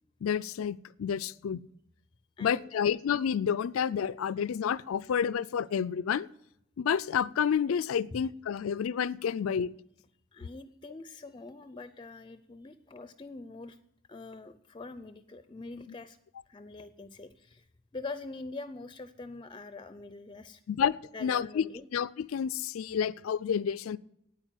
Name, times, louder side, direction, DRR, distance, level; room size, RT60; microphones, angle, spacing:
voice 1, 0.2-1.6 2.4-6.3 6.8-9.7 20.7-21.7 21.9-24.0, left 7 dB, 85° left, 17 dB, 0.4 m, -29 dB
voice 2, 2.4-2.9 10.3-13.8 14.1-16.2 16.5-17.7 17.9-20.6 21.1-21.9, left 3 dB, 25° left, 12 dB, 0.4 m, -44 dB
9.5 x 9.0 x 9.0 m, 0.79 s
head